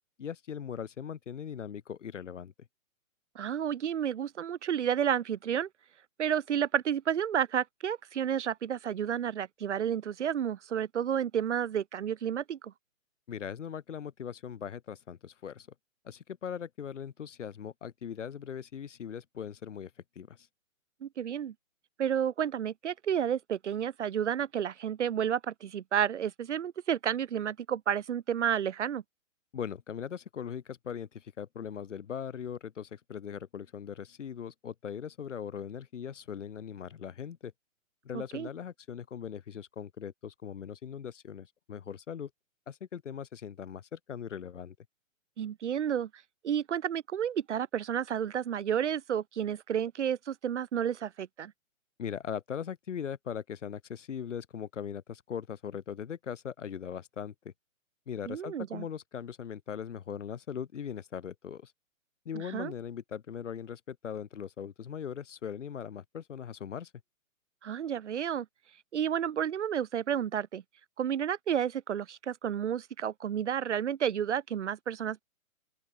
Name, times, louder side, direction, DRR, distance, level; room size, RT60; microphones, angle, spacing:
voice 1, 0.2-2.5 13.3-15.7 16.0-19.9 20.2-20.5 29.5-37.5 38.0-42.3 42.7-44.8 52.0-57.5 58.1-61.7 62.3-66.9, left 8 dB, 60° left, 2.3 m, -40 dB
voice 2, 3.3-5.7 6.2-12.7 21.0-21.5 22.0-29.0 38.1-38.5 45.4-46.1 46.4-51.5 58.3-58.8 62.3-62.7 67.6-68.5 68.9-70.6 71.0-75.2, right 9 dB, 55° right, 1.1 m, -31 dB
open air
figure-of-eight pair, 130°, 41 cm